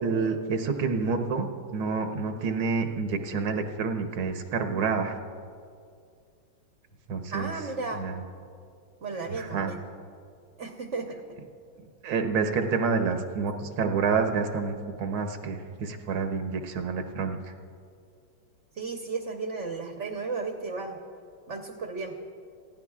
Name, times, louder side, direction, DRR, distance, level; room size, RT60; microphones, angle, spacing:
voice 1, 0.0-5.2 7.1-7.5 8.0-8.2 9.3-9.7 12.0-17.4, right 5 dB, 80° right, 6 dB, 1.8 m, -28 dB
voice 2, 7.3-8.1 9.0-9.8 10.6-11.2 18.7-21.0 21.5-22.1, right 4 dB, 45° right, 2 dB, 1.1 m, -34 dB
28.0 x 16.0 x 2.4 m, 2.3 s
omnidirectional pair, 2.2 m